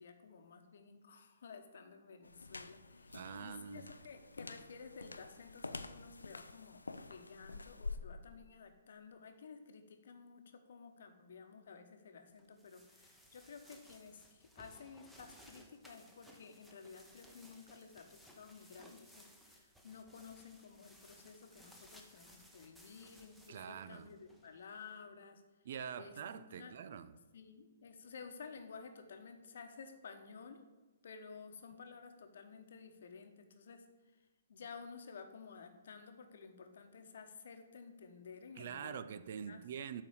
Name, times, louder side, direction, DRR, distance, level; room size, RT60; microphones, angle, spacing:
voice 1, 0.0-6.8 7.1-25.4 25.9-26.8 27.3-30.6 31.0-33.9 34.1-39.1 39.5-39.6, left 5 dB, 60° left, 1.0 m, -53 dB
sound 1, 2.2-8.0, left 3 dB, 85° left, 0.5 m, -48 dB
voice 2, 3.1-3.9 23.5-24.1 25.6-27.1 38.6-40.0, right 8 dB, 55° right, 0.4 m, -45 dB
sound 2, 12.4-24.9, equal, 5° right, 1.0 m, -61 dB
8.1 x 4.1 x 6.5 m
figure-of-eight pair, 125°, 0 cm